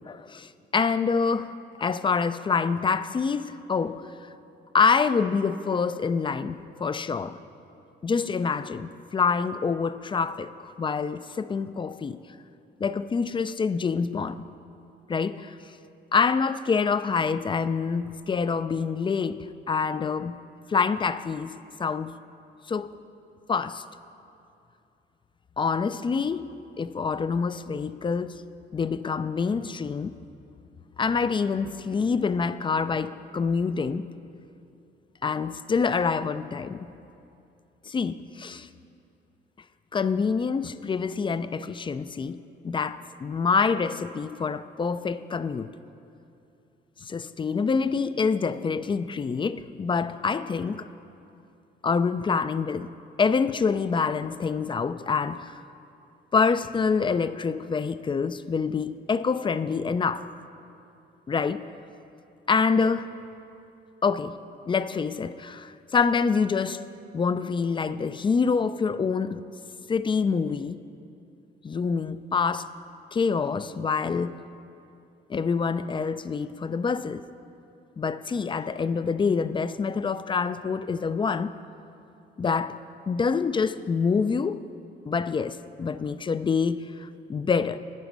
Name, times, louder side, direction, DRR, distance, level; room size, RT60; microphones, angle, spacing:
voice 1, 0.1-4.1 4.7-7.4 8.0-12.2 12.8-14.5 15.1-15.6 16.1-20.4 20.7-22.2 22.7-22.9 23.5-23.8 25.6-26.5 26.8-28.4 28.7-30.1 31.0-34.0 35.2-36.9 37.9-38.7 39.9-42.4 42.6-45.7 47.0-50.9 51.8-52.9 53.2-55.6 56.3-60.3 61.3-61.7 62.5-63.1 64.0-64.4 64.7-66.9 67.1-69.4 69.9-70.8 71.6-72.7 73.1-74.4 75.3-77.2 78.0-81.5 82.4-82.8 83.1-84.6 85.1-87.8, left 5 dB, 25° left, 0.3 m, -26 dB
10.5 x 9.3 x 5.3 m
cardioid pair, 90°, 20 cm